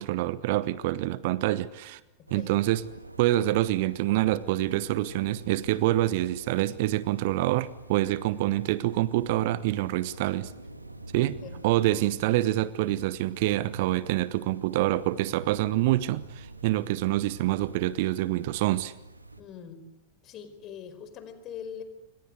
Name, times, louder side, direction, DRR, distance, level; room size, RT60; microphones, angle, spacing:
voice 1, 0.0-2.0 2.3-2.8 3.2-10.5 11.1-11.4 11.6-18.9, right 16 dB, 50° right, 18 dB, 1.0 m, -26 dB
sound 1, 2.3-19.4, right 2 dB, 85° right, 2.0 m, -46 dB
voice 2, 11.1-11.6 19.4-19.8 20.2-21.8, left 8 dB, 35° left, 10 dB, 4.9 m, -42 dB
29.0 x 25.0 x 8.2 m, 0.90 s
figure-of-eight pair, 90°, 0 cm